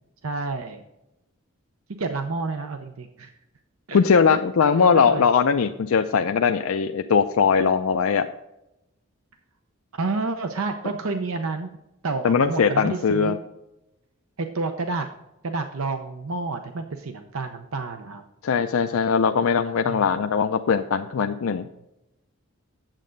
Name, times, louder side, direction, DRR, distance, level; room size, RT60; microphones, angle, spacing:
voice 1, 0.2-0.8 2.0-3.3 3.9-4.0 4.3-5.2 9.9-11.7 12.0-13.4 14.4-15.1 15.4-18.2 19.8-20.2, right 3 dB, 80° right, 6 dB, 0.7 m, -29 dB
voice 2, 3.9-8.3 12.2-13.4 18.4-21.7, left 6 dB, 75° left, 7 dB, 0.4 m, -20 dB
9.0 x 7.4 x 3.9 m, 0.91 s
head